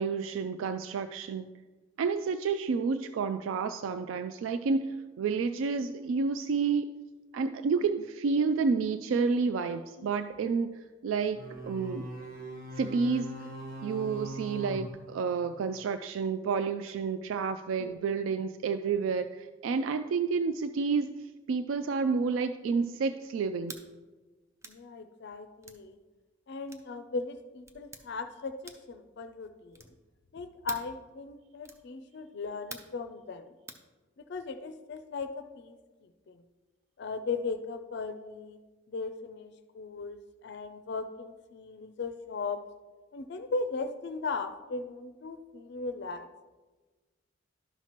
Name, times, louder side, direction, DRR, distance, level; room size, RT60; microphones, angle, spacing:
voice 1, 0.0-1.5 2.0-6.9 7.3-10.7 11.0-12.1 12.8-13.3 13.8-21.1 21.5-23.7, right 5 dB, 80° right, 10 dB, 0.3 m, -30 dB
voice 2, 10.0-10.4 17.8-18.1 24.6-26.0 26.5-29.9 30.3-33.5 34.2-36.4 37.0-38.6 38.9-42.6 43.1-46.3, left 4 dB, 55° left, 8 dB, 0.4 m, -38 dB
sound 1, 11.4-15.8, right 1 dB, 45° right, 1.1 m, -41 dB
Fuse Box Switch, 23.6-23.9 24.6-24.8 25.6-25.8 26.7-26.9 27.7-28.0 28.6-29.0 29.7-30.0 30.7-30.9 31.6-31.9 32.7-33.0 33.7-33.9, right 2 dB, 15° right, 0.5 m, -45 dB
11.5 x 5.7 x 3.0 m, 1.3 s
head